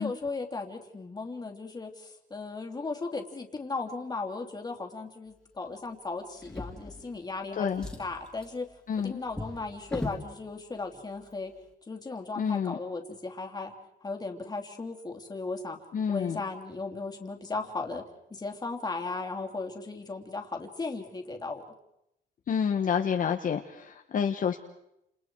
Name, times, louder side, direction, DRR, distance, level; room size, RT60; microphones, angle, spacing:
voice 1, 0.0-7.7 8.0-8.6 9.0-11.5 11.9-13.7 14.0-15.8 16.1-18.0 18.3-21.6, left 3 dB, 20° left, 3 dB, 2.9 m, -36 dB
Drawer open or close, 6.4-7.4 7.7-10.3 11.2-11.3 11.7-11.8, left 2 dB, 5° left, 3.2 m, -39 dB
voice 2, 8.9-9.2 12.4-12.8 15.9-16.4 22.5-24.6, left 7 dB, 50° left, 4 dB, 1.4 m, -28 dB
30.0 x 28.5 x 4.7 m, 0.83 s
cardioid pair, 155°, 18 cm